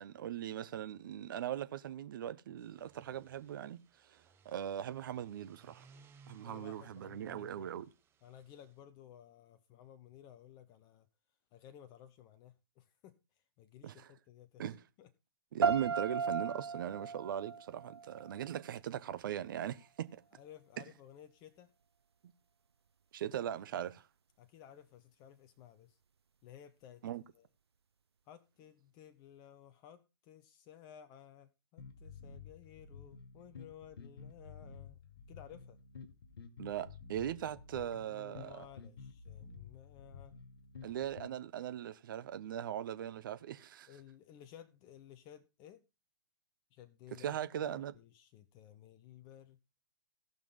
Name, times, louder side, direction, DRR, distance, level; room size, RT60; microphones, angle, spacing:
voice 1, 0.0-3.8 4.1-4.2 4.4-5.9 6.3-7.9 13.8-14.1 14.6-14.8 15.5-20.1 23.1-24.0 27.0-27.2 36.6-38.6 40.8-43.9 47.2-47.9, right 10 dB, 55° right, 1.0 m, -40 dB
sound 1, 2.5-8.8, right 5 dB, 20° right, 1.2 m, -64 dB
voice 2, 6.4-7.7 8.2-11.1 11.5-13.2 13.6-14.6 15.0-15.1 20.3-21.7 24.4-26.0 26.4-27.0 27.3-27.5 28.3-35.0 35.3-35.8 37.4-37.6 38.0-40.4 43.9-45.8 46.7-49.6, left 10 dB, 30° left, 1.0 m, -56 dB
sound 2, 15.6-18.6, right 5 dB, 80° right, 0.5 m, -36 dB
sound 3, 31.8-41.3, left 5 dB, 65° left, 2.1 m, -52 dB
17.5 x 6.0 x 4.0 m
figure-of-eight pair, 120°, 13 cm